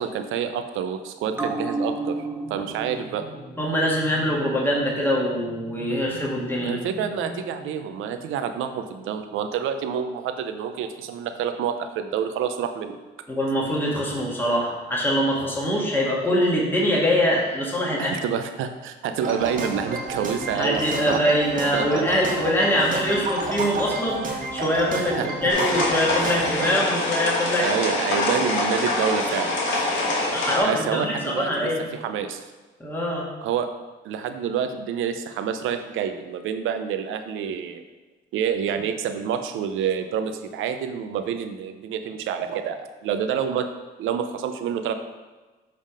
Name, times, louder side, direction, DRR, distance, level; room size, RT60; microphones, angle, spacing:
voice 1, 0.0-3.2 6.6-13.0 18.0-21.2 21.7-22.0 22.9-23.0 25.0-25.3 26.2-26.3 27.6-29.9 30.6-31.7 32.0-32.4 33.4-33.7 34.0-37.8 38.3-43.7 44.0-44.9, right 8 dB, 85° right, 8 dB, 0.6 m, -28 dB
sound 1, 1.3-8.3 8.6-8.7, right 2 dB, 10° right, 0.8 m, -35 dB
voice 2, 3.6-6.7 13.3-18.1 20.5-27.7 29.9-30.1 30.3-31.9 32.8-33.3, equal, 10° left, -4 dB, 1.7 m, -23 dB
sound 2, 19.2-26.8, right 3 dB, 40° right, 1.4 m, -30 dB
sound 3, 25.5-30.6, left 2 dB, 70° left, 1.7 m, -25 dB
7.5 x 3.6 x 4.9 m, 1.2 s
cardioid pair, 90°, 20 cm